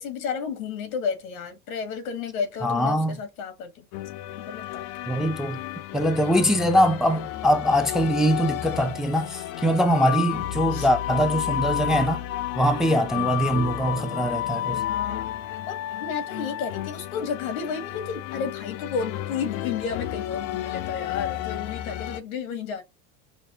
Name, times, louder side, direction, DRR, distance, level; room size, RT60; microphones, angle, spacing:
voice 1, 0.0-3.8 4.5-4.8 5.2-5.3 10.7-10.9 14.8-15.3 15.7-22.8, left 6 dB, 85° left, 1.3 m, -32 dB
voice 2, 2.6-3.2 5.1-5.6 5.9-12.3 12.6-14.8, equal, ahead, 0.5 m, -22 dB
sound 1, 3.9-22.2, left 13 dB, 65° left, 0.6 m, -31 dB
5.3 x 2.0 x 2.8 m
hypercardioid pair, 95°, 40 cm